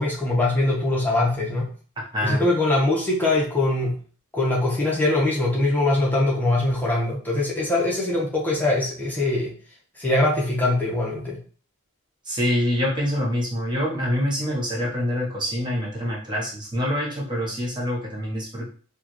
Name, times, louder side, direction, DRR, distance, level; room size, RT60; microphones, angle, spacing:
voice 1, 0.0-1.7 2.2-4.0 4.3-9.5 10.0-11.4, left 2 dB, 10° left, -5 dB, 1.0 m, -22 dB
voice 2, 2.1-2.4 12.2-18.7, equal, 20° right, -4 dB, 1.0 m, -25 dB
4.6 x 2.5 x 3.0 m, 0.41 s
head